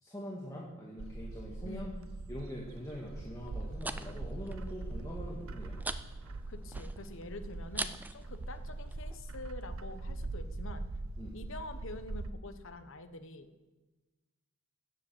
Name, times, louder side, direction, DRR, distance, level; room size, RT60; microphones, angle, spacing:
voice 1, 0.0-1.9 2.3-5.8 11.2-11.4, equal, 15° left, -4 dB, 1.6 m, -44 dB
Bird, 1.0-12.3, right 2 dB, 65° right, 0.6 m, -42 dB
voice 2, 1.6-2.1 6.5-10.8 11.3-13.5, left 2 dB, 60° left, 9 dB, 1.1 m, -46 dB
sound 1, 3.4-9.2, right 2 dB, 10° right, 0.4 m, -44 dB
13.5 x 7.7 x 8.0 m, 1.2 s
head